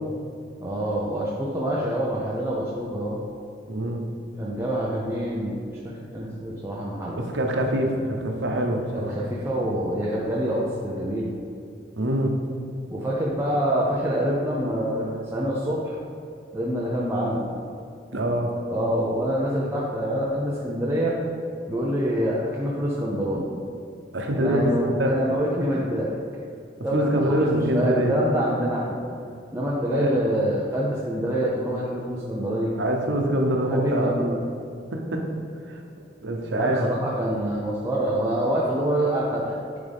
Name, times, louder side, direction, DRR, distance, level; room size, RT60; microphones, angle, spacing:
voice 1, 0.6-3.2 4.4-5.6 5.8-7.2 8.9-11.3 12.9-16.0 16.5-17.4 18.7-21.2 21.7-23.5 24.3-26.1 26.8-29.0 29.5-32.7 33.7-34.3 36.6-39.6, equal, 15° right, -5 dB, 0.6 m, -26 dB
voice 2, 3.7-4.0 7.1-9.1 12.0-12.4 18.1-18.6 24.1-25.1 26.9-28.2 29.9-30.2 32.7-34.1 34.9-35.3 35.7-35.8 36.2-36.9, right 1 dB, 90° right, 2 dB, 0.9 m, -24 dB
10.5 x 3.6 x 3.5 m, 2.5 s
head